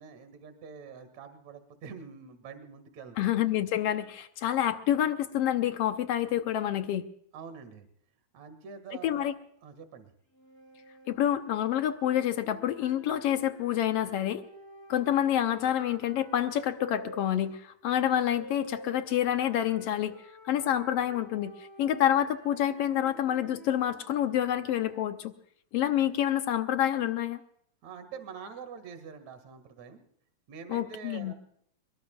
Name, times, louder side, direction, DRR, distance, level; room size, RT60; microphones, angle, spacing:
voice 1, 0.0-3.3 7.3-7.9 8.3-9.3 9.6-10.1 27.8-30.0 30.5-31.3, right 6 dB, 65° right, 9 dB, 3.1 m, -45 dB
voice 2, 3.2-7.0 9.0-9.3 11.1-14.4 14.9-20.1 20.4-25.3 25.7-27.4 30.7-31.3, left 11 dB, 70° left, 9 dB, 1.6 m, -28 dB
sound 1, 10.3-17.2 18.0-25.1, right 1 dB, 5° left, 3.3 m, -50 dB
24.0 x 21.5 x 2.3 m, 0.67 s
omnidirectional pair, 3.5 m